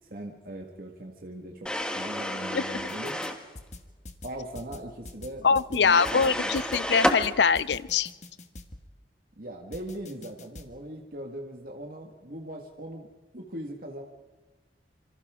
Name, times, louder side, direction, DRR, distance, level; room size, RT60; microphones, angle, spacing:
voice 1, 0.0-1.7 2.0-3.2 4.2-6.6 9.4-13.1 13.3-14.0, right 1 dB, 55° right, 2 dB, 1.8 m, -40 dB
sound 1, 1.7-3.4 5.9-7.2, equal, 5° left, 1.4 m, -30 dB
sound 2, 2.8-3.3 3.6-8.9 9.7-10.7, left 2 dB, 40° left, 1.5 m, -44 dB
voice 2, 5.4-8.1, left 5 dB, 80° left, 17 dB, 0.6 m, -23 dB
27.0 x 26.0 x 3.7 m, 1.3 s
head